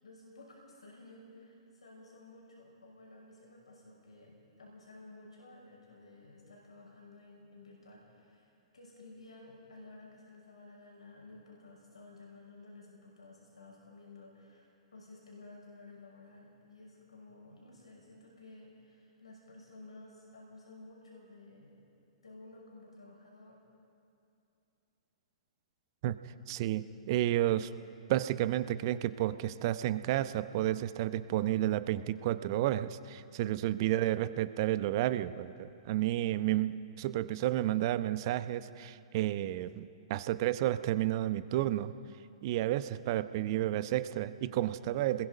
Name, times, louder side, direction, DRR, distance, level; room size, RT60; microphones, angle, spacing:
voice 1, 0.0-21.8 22.2-23.6, left 2 dB, 80° left, -3 dB, 5.9 m, -54 dB
voice 2, 26.0-27.7 28.1-41.9 42.4-45.3, right 13 dB, 45° right, 13 dB, 0.8 m, -31 dB
27.0 x 21.0 x 5.4 m, 2.8 s
figure-of-eight pair, 110°, 3 cm